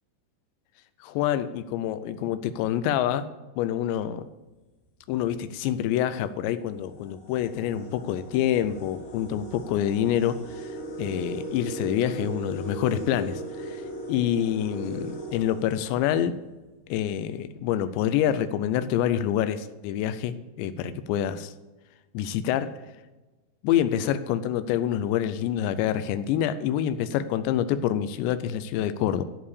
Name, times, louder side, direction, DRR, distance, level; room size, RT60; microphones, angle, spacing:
voice 1, 1.0-3.3 3.6-4.3 5.1-13.8 14.1-16.4 16.9-21.5 22.1-22.8 23.6-29.2, left 10 dB, 85° left, 12 dB, 2.9 m, -27 dB
sound 1, 5.0-5.3 6.1-6.2 6.6-16.4, right 1 dB, 65° left, 3.3 m, -38 dB
13.5 x 4.8 x 8.4 m, 1.2 s
omnidirectional pair, 5.0 m